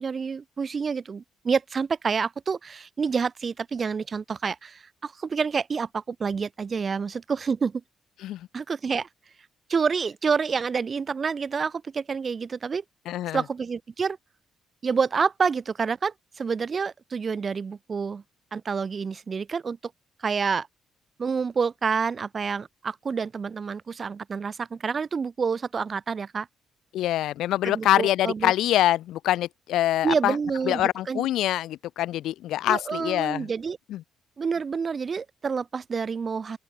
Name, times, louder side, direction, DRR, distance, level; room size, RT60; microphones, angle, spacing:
voice 1, 0.0-7.8 8.5-9.1 9.7-12.8 13.3-14.2 14.8-18.2 18.5-19.8 20.2-20.7 21.2-26.5 27.6-28.5 30.0-31.3 32.7-33.8 34.4-36.6, right 5 dB, 40° right, 2.1 m, -28 dB
voice 2, 13.1-13.4 26.9-30.3 30.7-33.5 33.9-34.0, left 13 dB, 85° left, 1.3 m, -25 dB
open air
cardioid pair, 90°, 0 cm